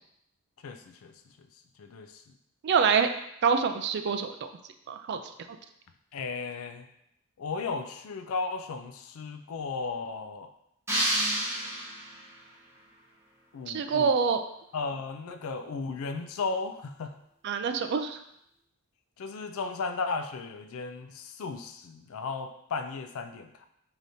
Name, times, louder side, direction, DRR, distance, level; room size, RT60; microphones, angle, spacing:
voice 1, 0.6-1.1 1.8-2.1 6.1-6.9 7.4-10.5 13.5-14.1 14.7-17.1 19.2-23.7, left 4 dB, 80° left, 8 dB, 0.4 m, -35 dB
voice 2, 2.6-3.1 3.4-4.3 4.9-5.2 13.7-14.4 17.4-18.2, right 6 dB, 55° right, 8 dB, 0.3 m, -25 dB
sound 1, 10.9-12.4, right 1 dB, 10° right, 0.8 m, -29 dB
4.8 x 2.8 x 2.6 m, 0.76 s
head